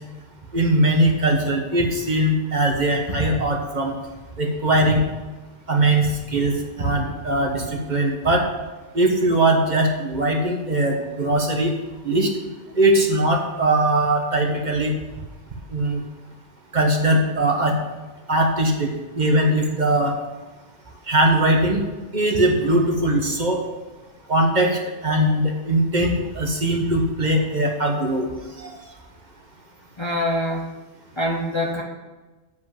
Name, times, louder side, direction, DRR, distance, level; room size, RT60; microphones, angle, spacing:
voice 1, 0.5-3.9 4.4-5.0 5.7-8.5 8.9-11.7 12.0-12.3 12.8-14.9 15.7-16.0 16.7-17.8 18.3-18.9 19.1-20.1 21.1-21.8 22.1-23.6 24.3-28.3 28.6-28.7, right 1 dB, 40° right, 1 dB, 1.3 m, -20 dB
voice 2, 30.0-30.7 31.2-31.8, left 1 dB, 30° left, 1 dB, 0.7 m, -24 dB
7.7 x 5.2 x 7.5 m, 1.2 s
omnidirectional pair, 1.2 m